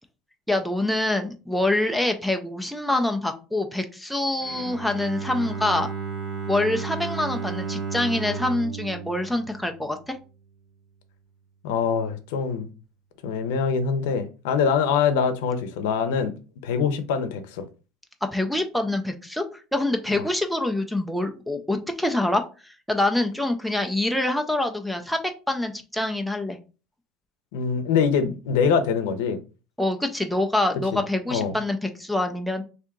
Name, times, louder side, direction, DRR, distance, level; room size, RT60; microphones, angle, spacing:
voice 1, 0.5-5.9 6.5-10.2 18.3-25.2 25.5-26.6 29.8-32.6, left 2 dB, ahead, 0.3 m, -25 dB
Bowed string instrument, 4.4-10.4, right 5 dB, 25° right, 0.8 m, -33 dB
voice 2, 11.6-12.7 13.2-16.3 16.6-17.7 20.1-20.2 27.5-29.4 30.9-31.0 31.3-31.5, left 6 dB, 85° left, 0.6 m, -24 dB
3.5 x 2.7 x 3.6 m
cardioid pair, 175°, 0 cm